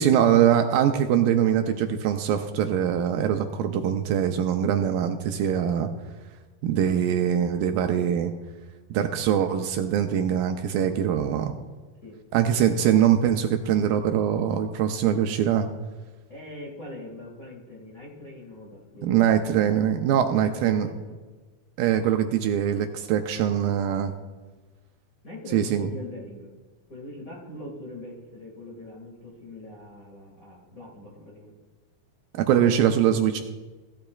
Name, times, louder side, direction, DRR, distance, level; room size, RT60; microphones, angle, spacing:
voice 1, 0.0-5.9 6.6-8.3 8.9-11.5 12.3-15.7 19.0-20.9 21.8-24.1 25.5-25.9 32.3-33.4, right 9 dB, 80° right, 6 dB, 2.2 m, -23 dB
voice 2, 16.3-19.1 20.3-21.1 25.2-26.5 26.9-31.5 33.3-33.4, left 1 dB, 35° left, -5 dB, 1.5 m, -42 dB
17.0 x 12.0 x 2.3 m, 1.3 s
omnidirectional pair, 4.3 m